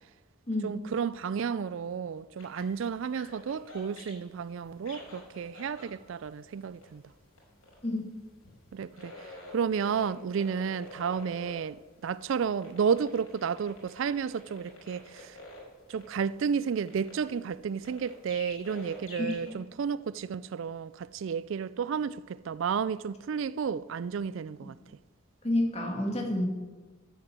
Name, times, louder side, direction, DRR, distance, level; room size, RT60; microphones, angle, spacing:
voice 1, 0.6-7.0 8.7-15.4 15.9-24.8, right 6 dB, 65° right, 0.3 m, -32 dB
sound 1, 2.4-19.5, left 2 dB, 75° left, 5.4 m, -48 dB
voice 2, 25.4-26.4, left 1 dB, 30° left, 2.2 m, -28 dB
13.0 x 8.0 x 7.5 m
head